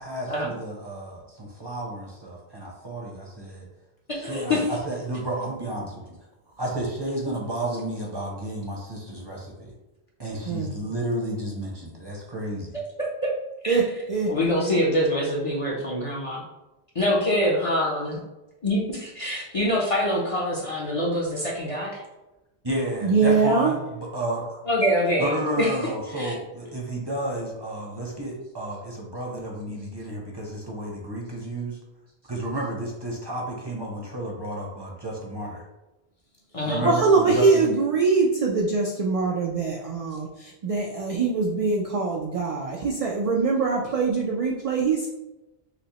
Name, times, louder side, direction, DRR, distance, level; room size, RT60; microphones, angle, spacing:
voice 1, 0.0-3.7 4.2-5.9 6.6-9.7 10.2-12.8 22.6-24.7 25.2-31.8 32.3-35.6 36.6-37.6, right 1 dB, 25° right, -2 dB, 0.6 m, -31 dB
voice 2, 4.1-4.7 13.0-13.3 13.6-13.8 14.3-16.4 16.9-18.2 18.6-22.0 24.7-25.7 26.1-26.3 36.5-36.9, left 1 dB, 40° left, -3 dB, 0.6 m, -25 dB
voice 3, 23.0-23.7 36.8-45.1, right 4 dB, 65° right, -1 dB, 0.3 m, -23 dB
5.8 x 2.0 x 2.9 m, 1.0 s
omnidirectional pair, 1.1 m